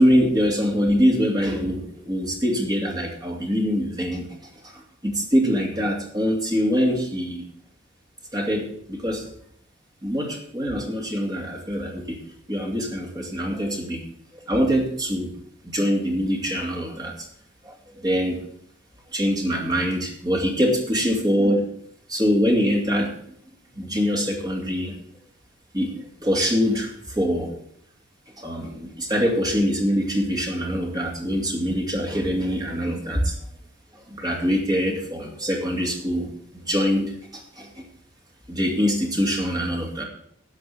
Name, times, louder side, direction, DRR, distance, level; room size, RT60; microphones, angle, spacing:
voice 1, 0.0-4.3 4.6-7.4 8.3-9.3 10.0-12.2 12.5-14.0 14.3-15.3 15.6-17.3 17.6-18.4 19.1-21.7 22.1-23.1 23.7-25.0 25.7-27.5 28.4-33.4 34.1-37.7 38.5-40.0, equal, 20° right, 0 dB, 2.7 m, -24 dB
11.5 x 5.9 x 8.6 m, 0.67 s
head